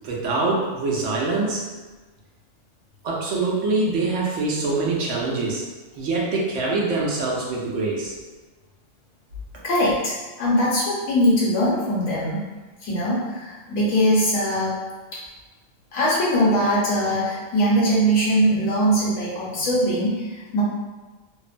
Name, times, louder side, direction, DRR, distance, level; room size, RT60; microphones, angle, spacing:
voice 1, 0.0-1.6 3.0-5.6 5.9-8.1, right 3 dB, 70° right, -3 dB, 0.9 m, -24 dB
voice 2, 9.6-12.5 12.8-14.8 15.1-15.2 15.9-20.6, equal, 80° left, -7 dB, 1.1 m, -21 dB
2.8 x 2.0 x 2.4 m, 1.3 s
omnidirectional pair, 1.4 m